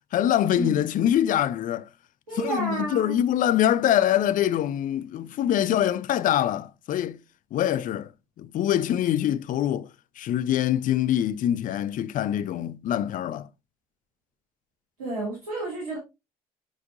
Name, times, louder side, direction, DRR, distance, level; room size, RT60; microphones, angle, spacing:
voice 1, 0.1-1.9 2.3-7.2 7.5-8.1 8.4-9.9 10.2-13.5, left 11 dB, 45° left, 0.6 m, -24 dB
voice 2, 2.3-3.2 15.0-16.0, right 2 dB, 80° right, 2.5 m, -30 dB
7.3 x 5.9 x 2.5 m
figure-of-eight pair, 55°, 18 cm